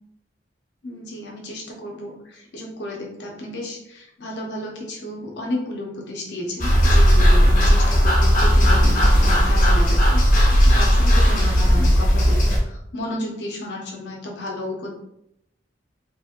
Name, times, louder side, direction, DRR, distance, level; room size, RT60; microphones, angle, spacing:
voice 1, 0.8-8.9 9.2-10.2 10.6-14.9, left 1 dB, 90° left, -1 dB, 0.8 m, -32 dB
sound 1, 6.6-12.6, equal, 50° left, 0.8 m, -15 dB
3.0 x 2.4 x 2.9 m, 0.79 s
head